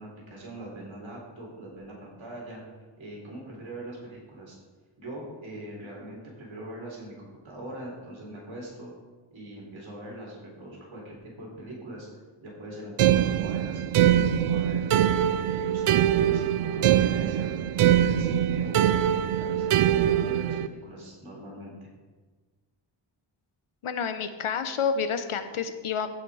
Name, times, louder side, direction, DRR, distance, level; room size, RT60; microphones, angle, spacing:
voice 1, 0.0-2.6 3.0-4.6 5.0-7.1 7.4-8.9 9.3-12.1 12.4-15.0 15.4-19.0 19.4-21.9, right 1 dB, 65° right, -3 dB, 3.8 m, -41 dB
sound 1, 13.0-20.7, right 10 dB, 85° right, 0.6 m, -23 dB
voice 2, 23.8-26.1, left 6 dB, 80° left, 10 dB, 0.9 m, -29 dB
15.5 x 5.9 x 4.9 m, 1.3 s
wide cardioid pair, 170°, 49 cm